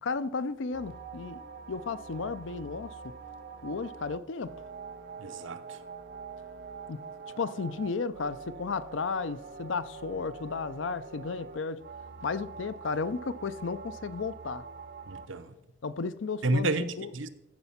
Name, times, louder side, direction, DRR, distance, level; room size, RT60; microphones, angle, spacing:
voice 1, 0.0-1.4 1.7-2.9 3.6-4.5 6.9-7.0 7.4-11.8 12.2-14.6 15.8-16.7 17.0-17.1, left 4 dB, 80° left, 0.5 m, -33 dB
sound 1, 0.7-15.3, right 5 dB, 55° right, 0.6 m, -45 dB
voice 2, 5.2-5.6 15.1-15.6 16.4-17.3, right 2 dB, 85° right, 0.8 m, -30 dB
14.0 x 5.3 x 5.7 m
head